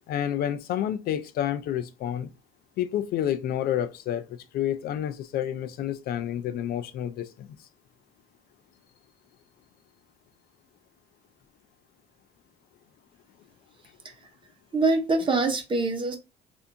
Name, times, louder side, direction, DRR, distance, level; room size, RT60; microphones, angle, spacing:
voice 1, 0.1-2.3 2.8-4.2 4.5-7.7, left 10 dB, 65° left, 0.4 m, -29 dB
voice 2, 14.7-16.2, right 3 dB, 30° right, 1.0 m, -24 dB
3.3 x 2.6 x 2.7 m
cardioid pair, 110°, 17 cm